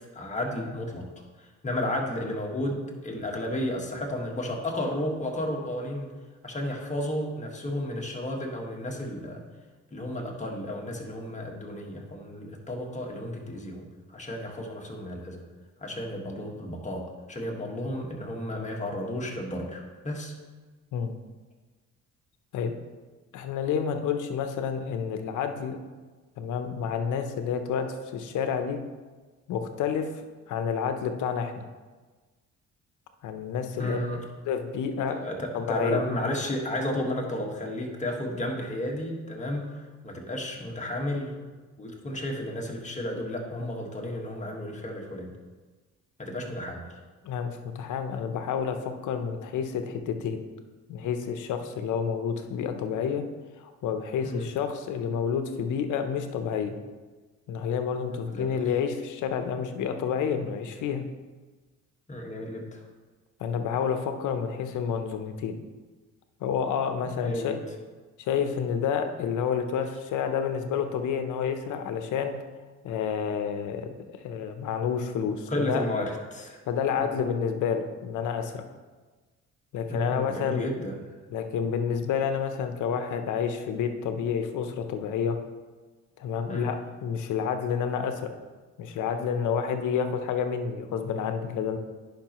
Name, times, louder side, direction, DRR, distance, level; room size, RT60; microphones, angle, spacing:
voice 1, 0.1-1.1 1.4-6.1 6.4-9.4 9.9-13.9 14.1-15.4 15.8-20.3 33.8-34.2 35.1-41.3 41.8-45.3 46.2-46.9 54.2-54.5 58.3-58.6 62.1-62.8 67.0-67.6 75.5-76.6 77.0-77.2 79.9-81.0 86.5-86.7, left 1 dB, 25° left, -1 dB, 1.6 m, -32 dB
voice 2, 23.3-25.8 26.4-27.9 28.1-28.8 29.5-30.1 30.5-31.6 33.2-34.0 34.5-35.2 35.5-36.0 47.2-50.4 50.9-53.2 53.6-56.8 57.5-61.0 63.4-65.6 66.4-67.6 68.2-72.3 72.8-73.9 74.2-75.8 76.7-78.6 79.7-80.7 81.3-85.4 86.2-88.3 88.8-91.8, left 7 dB, 80° left, 7 dB, 0.8 m, -29 dB
10.5 x 5.3 x 3.0 m, 1.3 s
cardioid pair, 90°, 30 cm